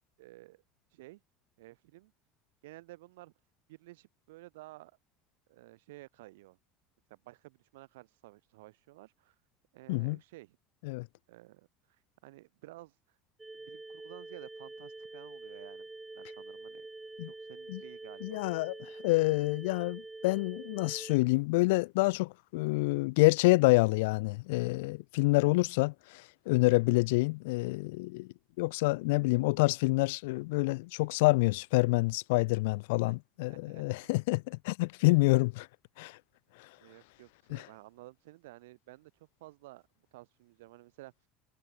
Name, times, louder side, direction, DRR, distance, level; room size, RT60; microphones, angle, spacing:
voice 1, 0.2-0.6 0.9-1.2 1.6-2.1 2.6-3.3 3.7-5.0 5.5-6.6 7.1-9.4 9.7-10.6 11.3-13.2 13.5-15.9 16.1-18.4 33.0-34.2 36.8-39.8 40.1-41.1, right 19 dB, 90° right, 3.8 m, -53 dB
sound 1, 13.4-21.2, right 2 dB, 10° right, 2.6 m, -46 dB
voice 2, 18.2-18.8 19.0-28.3 28.6-35.7 36.0-36.2 37.5-37.6, left 24 dB, 85° left, 0.3 m, -27 dB
supercardioid pair, 105°, 0 cm